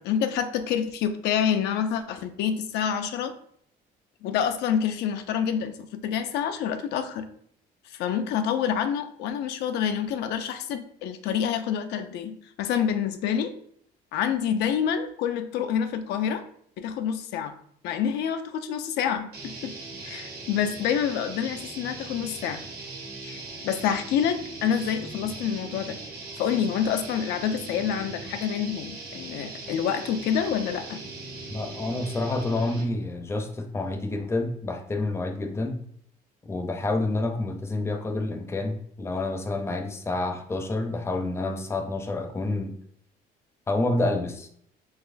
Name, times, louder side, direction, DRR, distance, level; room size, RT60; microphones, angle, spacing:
voice 1, 0.0-3.3 4.2-7.3 7.9-13.5 14.1-16.4 16.8-17.5 17.8-19.7 20.0-22.6 23.2-26.0 26.4-31.0, left 8 dB, 80° left, 8 dB, 0.4 m, -27 dB
sound 1, 19.3-33.0, right 3 dB, 75° right, 1.2 m, -40 dB
voice 2, 31.5-35.8 36.4-42.7 43.7-44.5, left 2 dB, 15° left, 5 dB, 0.5 m, -28 dB
4.0 x 3.0 x 2.5 m, 0.64 s
cardioid pair, 110°, 17 cm